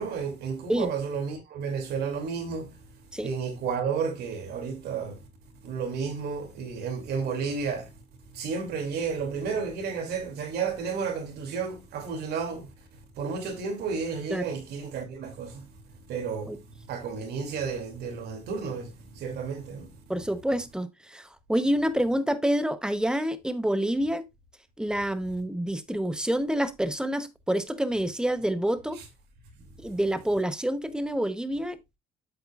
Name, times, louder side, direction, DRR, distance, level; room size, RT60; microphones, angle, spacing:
voice 1, 0.0-2.7 3.2-5.2 5.6-7.9 8.3-12.7 13.2-15.6 16.1-16.6 16.9-19.9 28.9-29.0, right 5 dB, 75° right, 2.7 m, -32 dB
voice 2, 20.1-24.3 24.8-29.0 29.8-32.0, right 1 dB, 5° right, 0.8 m, -27 dB
7.9 x 7.9 x 2.4 m
cardioid pair, 110°, 17 cm